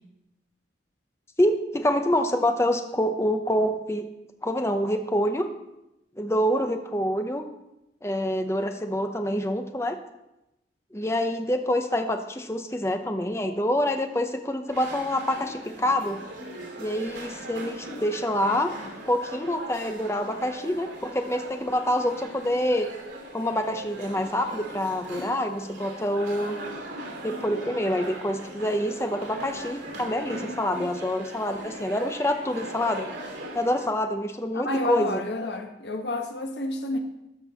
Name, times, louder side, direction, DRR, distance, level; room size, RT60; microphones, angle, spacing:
voice 1, 1.4-4.1 4.4-5.5 6.2-7.5 8.0-10.0 10.9-16.2 16.8-18.7 19.0-22.9 23.3-26.6 27.2-33.1 33.5-35.2, left 1 dB, 15° left, 6 dB, 0.7 m, -26 dB
sound 1, 14.7-33.9, right 1 dB, 90° right, 2.9 m, -40 dB
voice 2, 34.5-37.0, left 2 dB, 70° left, 4 dB, 1.2 m, -29 dB
13.0 x 4.6 x 6.9 m, 0.91 s
head